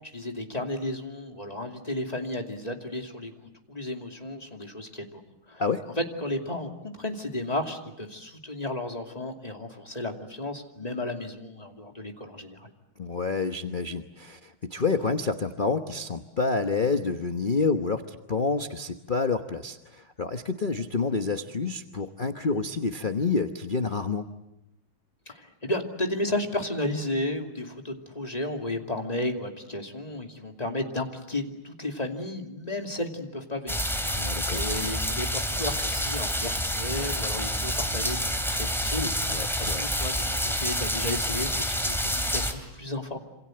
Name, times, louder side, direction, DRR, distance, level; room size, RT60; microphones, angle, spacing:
voice 1, 0.1-3.3 3.7-5.2 5.5-5.6 6.2-12.7 25.3-43.2, left 1 dB, 20° left, 3 dB, 2.7 m, -33 dB
voice 2, 13.0-24.2 34.1-34.6 39.3-39.8, left 4 dB, 35° left, 7 dB, 0.9 m, -28 dB
sound 1, 33.7-42.5, equal, ahead, 3.1 m, -28 dB
27.5 x 27.0 x 7.8 m, 0.88 s
omnidirectional pair, 2.3 m